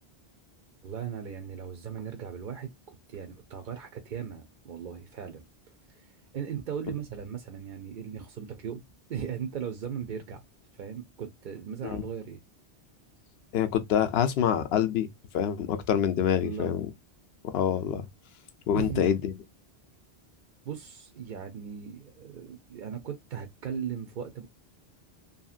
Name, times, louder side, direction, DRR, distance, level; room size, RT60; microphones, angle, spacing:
voice 1, 0.8-5.4 5.9-6.1 6.3-8.8 9.1-10.4 10.8-12.4 16.4-16.8 18.7-19.0 20.6-24.5, right 7 dB, 55° right, 0.7 m, -38 dB
voice 2, 13.5-15.1 15.3-16.9 17.4-18.0 18.7-19.3, left 9 dB, 70° left, 0.8 m, -26 dB
2.8 x 2.7 x 2.3 m
omnidirectional pair, 1.1 m